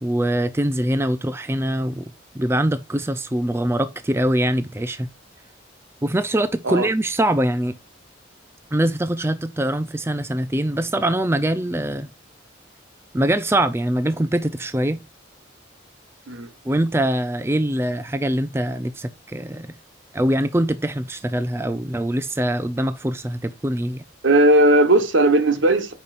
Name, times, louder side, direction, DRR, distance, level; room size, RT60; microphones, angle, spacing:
voice 1, 0.0-5.1 6.0-7.8 8.7-12.1 13.1-15.0 16.6-19.8 20.1-24.0, right 1 dB, 15° right, 0.4 m, -23 dB
voice 2, 24.2-25.9, right 1 dB, 75° right, 1.2 m, -16 dB
9.0 x 5.6 x 2.5 m
head